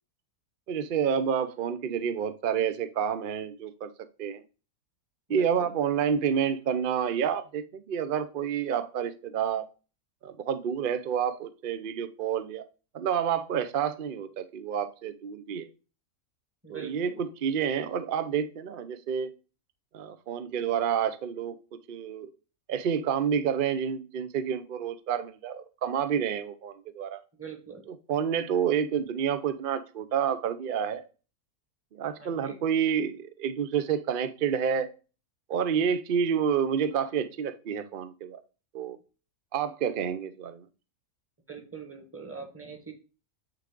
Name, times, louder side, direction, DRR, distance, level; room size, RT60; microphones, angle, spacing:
voice 1, 0.7-3.9 4.2-4.4 5.3-9.7 10.2-12.6 12.9-15.7 16.7-19.3 19.9-21.6 21.9-22.3 22.7-27.2 28.1-31.0 31.9-34.9 35.5-38.4 38.7-39.0 39.5-40.6, right 8 dB, 55° right, 0.5 m, -29 dB
voice 2, 5.3-5.7 16.6-17.2 27.4-27.8 28.5-28.7 32.2-32.6 41.5-42.9, right 6 dB, 10° right, 1.1 m, -42 dB
8.9 x 3.5 x 3.7 m
omnidirectional pair, 1.6 m